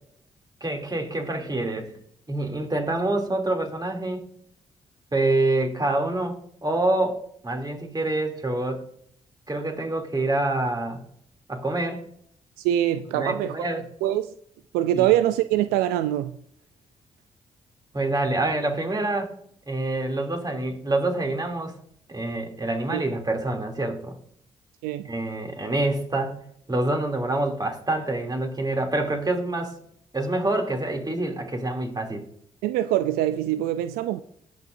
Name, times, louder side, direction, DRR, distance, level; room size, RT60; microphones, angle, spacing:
voice 1, 0.6-1.9 2.3-4.2 5.1-7.2 7.4-8.8 9.5-11.0 11.5-12.0 13.1-13.8 15.0-15.1 17.9-19.3 19.7-21.8 22.1-24.2 25.1-26.4 26.7-29.8 30.1-32.2, right 2 dB, 25° right, 2.7 m, -26 dB
voice 2, 12.6-13.7 14.0-14.3 14.7-16.4 22.9-23.0 24.8-25.1 32.6-34.2, right 12 dB, 80° right, 0.4 m, -24 dB
18.5 x 6.4 x 2.6 m
hypercardioid pair, 45°, 15 cm